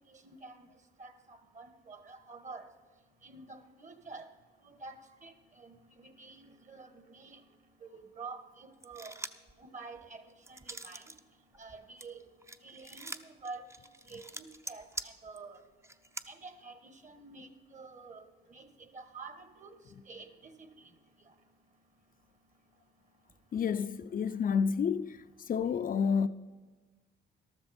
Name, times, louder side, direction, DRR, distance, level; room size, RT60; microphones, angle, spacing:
voice 1, 0.1-0.7 1.0-2.6 3.2-4.3 4.6-7.4 7.8-9.1 9.6-10.2 10.5-11.0 11.6-12.2 12.6-13.6 14.1-15.6 16.3-18.2 18.5-19.7 20.0-20.7, right 4 dB, 40° right, 1.6 m, -48 dB
sound 1, 8.8-9.5 10.0-11.2 11.5-16.3, right 2 dB, 15° right, 0.7 m, -44 dB
voice 2, 23.5-25.2 25.5-26.3, left 6 dB, 45° left, 0.5 m, -29 dB
13.5 x 12.5 x 4.3 m
cardioid pair, 90°, 20 cm